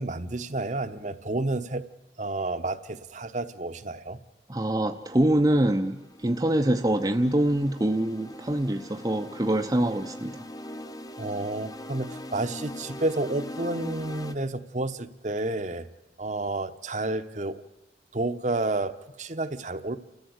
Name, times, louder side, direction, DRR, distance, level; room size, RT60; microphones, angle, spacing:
voice 1, 0.0-1.8 2.2-4.2 11.2-15.9 16.2-17.6 18.1-20.0, right 2 dB, 40° right, 1.0 m, -30 dB
voice 2, 4.5-10.5, right 1 dB, 20° right, 0.7 m, -25 dB
sound 1, 5.6-14.3, left 1 dB, 20° left, 0.8 m, -41 dB
29.5 x 14.5 x 8.0 m
head